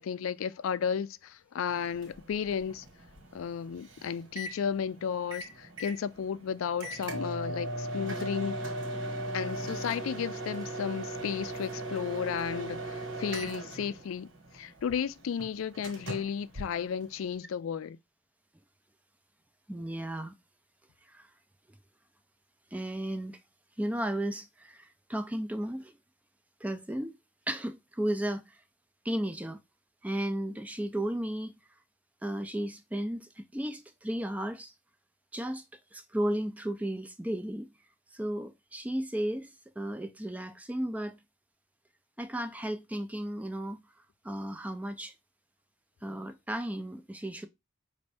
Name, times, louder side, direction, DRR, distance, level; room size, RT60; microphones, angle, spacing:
voice 1, 0.0-2.8 3.3-8.6 9.3-18.0, left 7 dB, 85° left, 0.3 m, -33 dB
Microwave oven, 1.7-17.4, right 1 dB, 75° right, 1.5 m, -39 dB
voice 2, 19.7-20.4 21.0-21.3 22.7-23.4 23.8-25.9 26.6-27.1 27.5-28.6 29.0-29.6 30.0-31.5 32.2-34.7 35.3-35.6 35.9-37.7 38.1-41.2 42.2-43.8 44.2-45.1 46.0-47.5, right 1 dB, 5° right, 0.3 m, -34 dB
5.2 x 2.6 x 3.3 m
head